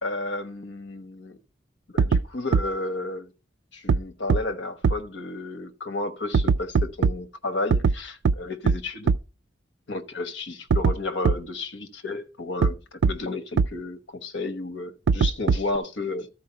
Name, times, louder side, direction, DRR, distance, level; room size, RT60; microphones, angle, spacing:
voice 1, 0.0-1.4 1.9-3.3 3.7-9.1 9.9-16.3, left 2 dB, 70° left, 1.1 m, -32 dB
Trap kick, 2.0-2.2 2.5-2.6 3.9-4.0 4.3-4.4 4.8-4.9 6.3-7.1 7.7-7.9 8.2-8.3 8.7-8.8 9.1-9.2 10.7-10.9 11.2-11.3 12.6-12.7 13.0-13.1 13.6-13.7 15.1-15.8, right 5 dB, 80° right, 0.4 m, -19 dB
13.0 x 4.7 x 5.6 m
head